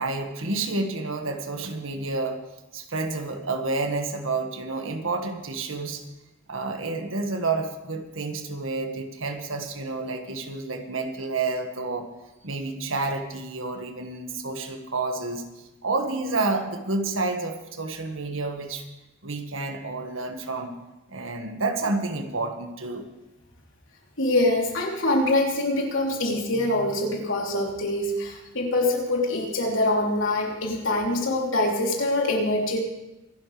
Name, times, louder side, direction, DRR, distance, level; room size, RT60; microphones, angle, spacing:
voice 1, 0.0-2.4 2.7-6.0 6.5-12.1 12.4-15.4 15.8-18.8 19.2-20.8 21.1-23.0, right 3 dB, 85° right, 5 dB, 1.8 m, -29 dB
voice 2, 24.2-32.8, left 1 dB, 75° left, -1 dB, 3.4 m, -24 dB
24.5 x 12.0 x 3.4 m, 0.98 s
head